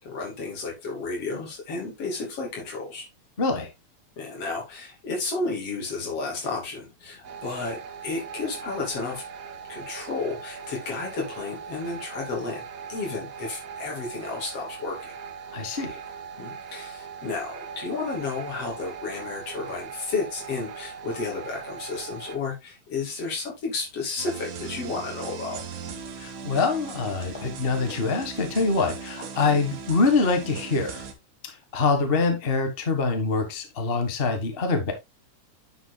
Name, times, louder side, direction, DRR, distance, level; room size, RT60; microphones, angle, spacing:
voice 1, 0.0-3.1 4.2-9.2 9.7-15.1 16.4-25.6 29.5-29.6, left 3 dB, 55° left, 3.8 m, -32 dB
voice 2, 3.4-3.7 15.5-16.0 26.2-31.1 31.4-34.9, left 4 dB, 35° left, 0.9 m, -25 dB
sound 1, 7.2-22.4, right 6 dB, 60° right, 2.3 m, -40 dB
sound 2, 24.2-31.1, right 6 dB, 90° right, 3.0 m, -38 dB
9.9 x 7.2 x 2.2 m
omnidirectional pair, 3.4 m